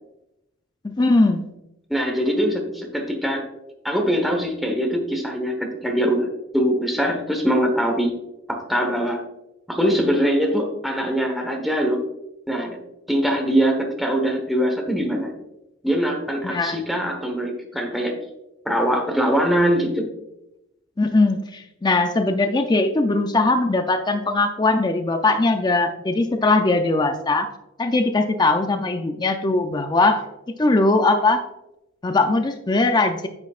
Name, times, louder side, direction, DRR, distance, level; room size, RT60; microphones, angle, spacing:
voice 1, 0.8-1.5 16.4-16.8 21.0-27.5 27.8-30.2 30.6-31.4 32.0-33.3, left 2 dB, 20° left, 6 dB, 0.4 m, -20 dB
voice 2, 1.9-3.4 3.8-6.3 6.5-8.1 8.5-9.2 9.7-12.0 12.5-12.8 13.1-15.3 15.8-18.2 18.6-20.1, equal, ahead, 2 dB, 1.1 m, -22 dB
9.7 x 6.2 x 2.4 m, 0.90 s
head